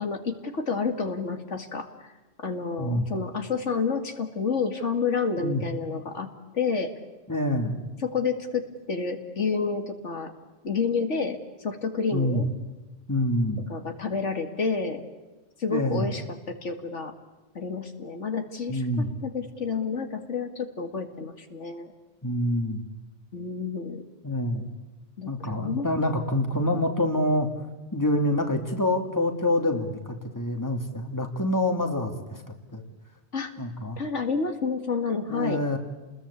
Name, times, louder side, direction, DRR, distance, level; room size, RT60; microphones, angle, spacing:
voice 1, 0.0-2.1 2.4-6.3 6.5-6.9 8.0-10.3 10.6-12.5 13.7-15.0 15.6-17.1 17.5-21.9 23.3-24.0 25.2-25.9 33.3-33.5 34.0-35.6, left 5 dB, 75° left, 6 dB, 2.4 m, -29 dB
voice 2, 7.3-7.8 12.1-12.4 13.1-13.6 15.7-16.1 18.7-19.1 22.2-22.8 24.2-24.7 25.3-27.5 27.9-32.4 32.7-32.8 33.6-34.0 35.3-35.8, left 1 dB, 15° left, 4 dB, 2.7 m, -26 dB
30.0 x 21.0 x 8.5 m, 1.2 s
omnidirectional pair, 1.2 m